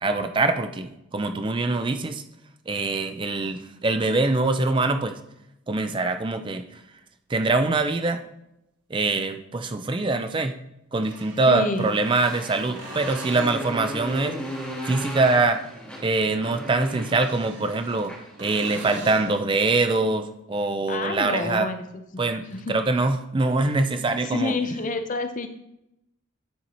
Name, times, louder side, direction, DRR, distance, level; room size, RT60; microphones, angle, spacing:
voice 1, 0.0-2.2 2.7-5.1 5.7-6.6 7.3-8.2 8.9-10.5 10.9-14.4 14.8-15.6 16.0-18.1 18.4-21.7 22.2-24.5, right 3 dB, 25° right, 8 dB, 0.4 m, -24 dB
sound 1, 7.4-7.5 9.6-9.7 10.9-11.7 12.8-13.9 17.0-18.1 18.4-19.4 23.1-23.2, right 2 dB, 60° right, 2.1 m, -40 dB
voice 2, 11.5-11.9 20.9-22.8 24.0-25.5, left 3 dB, 40° left, 8 dB, 0.6 m, -29 dB
Motorcycle, 11.6-19.0, equal, 5° left, 1.8 m, -37 dB
9.4 x 4.5 x 4.2 m, 0.86 s
head